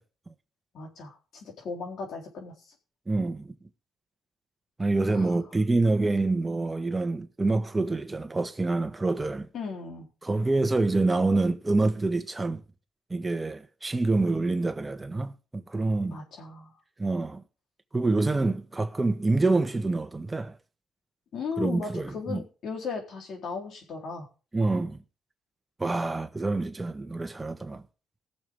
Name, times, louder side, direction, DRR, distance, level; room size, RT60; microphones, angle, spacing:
voice 1, 0.7-2.5 5.1-5.4 9.5-10.1 16.1-16.7 21.3-24.3, left 5 dB, 65° left, 3.9 m, -36 dB
voice 2, 3.1-3.5 4.8-9.5 10.2-12.6 13.1-16.2 17.0-17.4 17.9-20.6 21.6-22.4 24.5-25.0 25.8-27.8, right 2 dB, 20° right, 1.5 m, -26 dB
20.0 x 7.1 x 3.7 m
cardioid pair, 90°, 0 cm